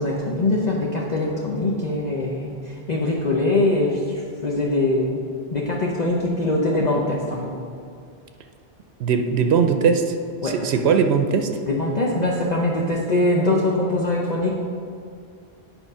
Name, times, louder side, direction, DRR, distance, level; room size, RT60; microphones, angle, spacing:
voice 1, 0.0-5.2 5.5-7.6 10.4-10.7 11.7-14.5, left 2 dB, 45° left, -3 dB, 0.8 m, -22 dB
voice 2, 9.0-10.2 10.4-11.5, right 6 dB, 85° right, 6 dB, 0.8 m, -19 dB
8.8 x 4.5 x 5.4 m, 2.3 s
omnidirectional pair, 1.1 m